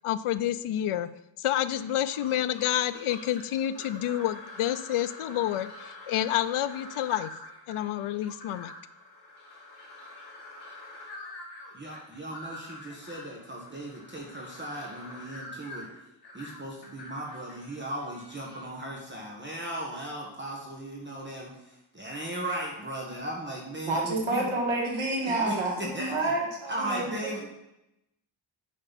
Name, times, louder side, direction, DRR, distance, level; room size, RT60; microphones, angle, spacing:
voice 1, 0.0-1.1 1.4-7.3 7.7-8.7, left 12 dB, 80° left, 12 dB, 0.6 m, -29 dB
sound 1, 1.7-18.7, left 2 dB, 50° left, 2.8 m, -46 dB
voice 2, 11.7-15.9 16.3-24.5 25.2-26.3 26.7-27.4, right 1 dB, 20° right, -2 dB, 1.4 m, -37 dB
voice 3, 23.9-27.4, right 2 dB, 70° right, 0 dB, 2.1 m, -29 dB
9.4 x 5.4 x 4.1 m, 0.87 s
wide cardioid pair, 135°, 49 cm